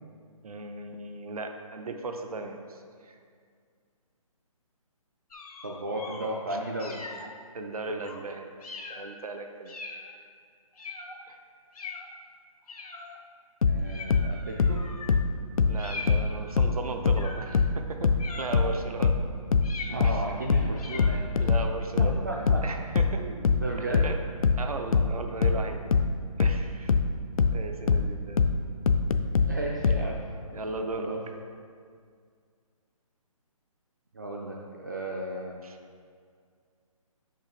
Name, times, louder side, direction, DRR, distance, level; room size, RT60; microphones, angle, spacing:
voice 1, 0.4-3.2 7.5-8.5 8.9-9.8 11.3-11.4 15.7-19.2 20.0-20.2 21.4-23.3 24.0-24.2 24.6-25.8 26.4-27.0 27.5-28.5 30.5-31.1 35.6-35.8, right 3 dB, 80° right, 5 dB, 0.8 m, -36 dB
sound 1, 5.3-6.3 6.8-7.3 8.0-8.2 8.6-9.1 9.7-10.1 10.8-11.2 11.7-12.1 12.7-13.2 13.8-15.2 15.8-16.5 17.2-17.6 18.2-18.8 19.6-20.3 20.7-21.2, left 3 dB, 85° left, 1.0 m, -41 dB
voice 2, 5.6-7.0 13.6-14.8 19.9-21.3 22.0-22.6 23.2-24.1 29.5-30.2 30.9-31.2 34.1-35.6, right 1 dB, 30° right, -1 dB, 0.4 m, -34 dB
sound 2, 13.6-16.8 17.1-30.1, left 5 dB, 70° left, 0.4 m, -23 dB
5.6 x 5.5 x 4.7 m, 2.1 s
hypercardioid pair, 175°, 19 cm